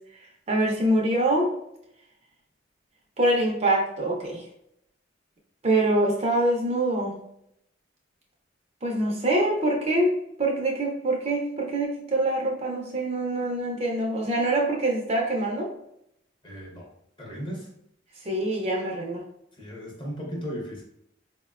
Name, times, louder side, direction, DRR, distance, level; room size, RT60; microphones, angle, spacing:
voice 1, 0.1-1.5 3.2-4.5 5.6-7.2 8.8-15.7 18.2-19.2, right 1 dB, 35° right, 0 dB, 0.5 m, -25 dB
voice 2, 16.4-16.9 17.2-17.7 19.6-20.8, equal, 25° left, -2 dB, 0.7 m, -36 dB
4.0 x 2.1 x 2.3 m, 0.77 s
head